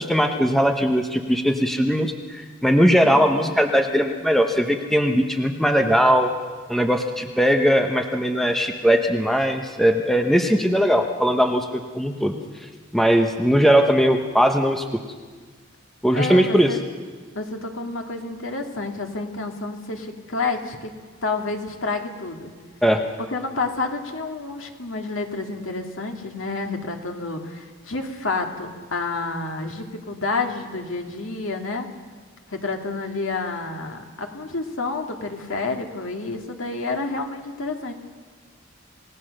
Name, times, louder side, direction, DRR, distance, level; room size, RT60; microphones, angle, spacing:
voice 1, 0.0-6.3 6.7-12.4 12.9-14.8 16.0-16.7 22.8-23.0, equal, ahead, 4 dB, 1.0 m, -19 dB
voice 2, 3.0-3.5 16.1-16.8 17.3-20.9 21.2-22.5 23.3-31.9 32.5-37.9, left 3 dB, 70° left, 3 dB, 2.2 m, -29 dB
28.0 x 17.5 x 6.5 m, 1.5 s
head